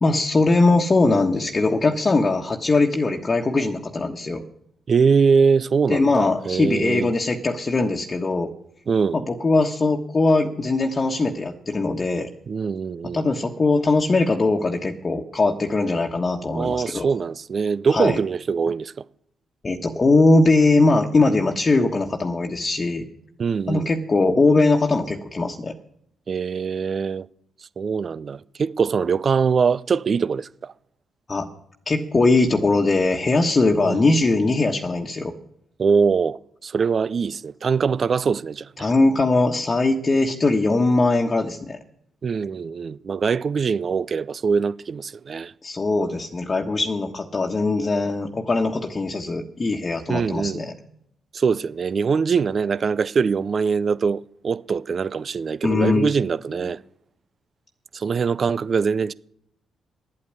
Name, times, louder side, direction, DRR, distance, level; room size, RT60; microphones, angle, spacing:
voice 1, 0.0-4.4 5.9-8.5 9.1-12.3 13.1-17.1 17.9-18.2 19.6-23.0 23.7-25.7 31.3-31.5 31.9-35.3 38.8-41.8 45.6-50.7 55.6-56.1, left 3 dB, 40° left, 1.3 m, -20 dB
voice 2, 4.9-7.1 8.9-9.2 12.5-13.3 16.5-18.9 23.4-23.9 26.3-27.3 27.8-30.7 33.8-34.0 35.8-38.9 42.2-45.5 50.1-50.6 51.3-56.8 57.9-59.1, right 5 dB, 50° right, 0.4 m, -23 dB
10.5 x 8.6 x 9.7 m
hypercardioid pair, 45°, 0 cm